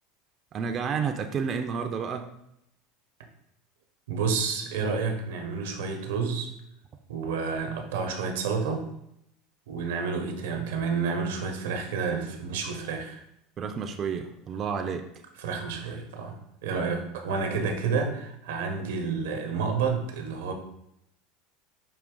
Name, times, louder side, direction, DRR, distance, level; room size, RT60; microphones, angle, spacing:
voice 1, 0.5-2.3 13.6-15.0 16.7-16.8 17.4-17.6, right 6 dB, 35° right, 5 dB, 0.4 m, -31 dB
voice 2, 4.1-6.5 7.1-8.9 9.7-13.2 15.4-20.5, right 5 dB, 85° right, 4 dB, 0.8 m, -30 dB
5.1 x 2.7 x 3.7 m, 0.80 s
supercardioid pair, 110°, 0 cm